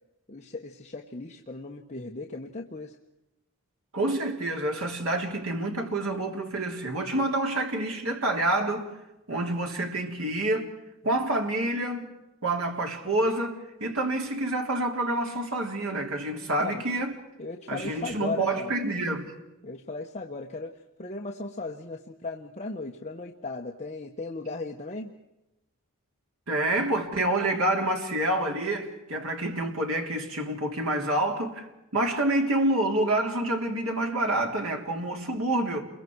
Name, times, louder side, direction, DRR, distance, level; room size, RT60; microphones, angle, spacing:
voice 1, 0.3-3.0 16.6-16.8 17.4-18.7 19.6-20.7 21.0-25.1, left 3 dB, 30° left, 1.2 m, -37 dB
voice 2, 3.9-8.9 9.3-10.7 11.0-12.1 12.4-17.1 17.7-19.3 26.5-31.7 31.9-35.8, right 1 dB, 70° right, 3.5 m, -27 dB
30.0 x 23.0 x 4.7 m
head